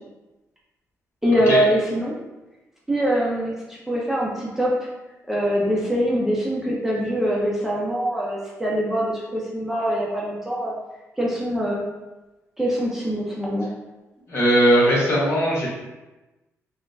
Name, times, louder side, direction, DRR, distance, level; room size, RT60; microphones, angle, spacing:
voice 1, 1.2-2.1 2.9-4.9 5.3-10.7 11.2-11.8 12.6-13.7, equal, 5° right, -5 dB, 0.6 m, -23 dB
voice 2, 14.3-15.7, equal, 50° left, -6 dB, 1.3 m, -18 dB
4.1 x 2.1 x 2.6 m, 1.1 s
cardioid pair, 95°, 6 cm